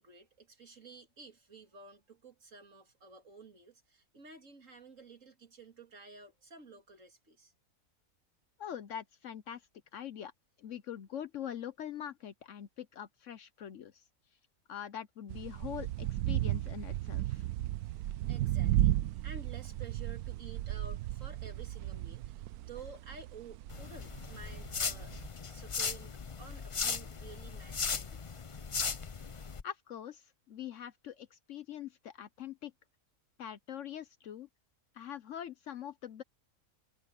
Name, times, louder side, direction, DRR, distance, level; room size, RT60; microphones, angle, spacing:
voice 1, 0.0-7.5 17.8-25.2 25.5-28.4, right 4 dB, 55° right, 2.8 m, -52 dB
voice 2, 8.6-9.7 9.9-10.3 10.6-14.0 14.7-17.4 29.6-32.7 33.4-34.5 34.9-36.2, left 9 dB, 60° left, 1.0 m, -43 dB
sound 1, 15.3-25.3, right 14 dB, 80° right, 1.1 m, -34 dB
sound 2, 23.7-29.6, left 5 dB, 45° left, 0.4 m, -37 dB
omnidirectional pair, 1.6 m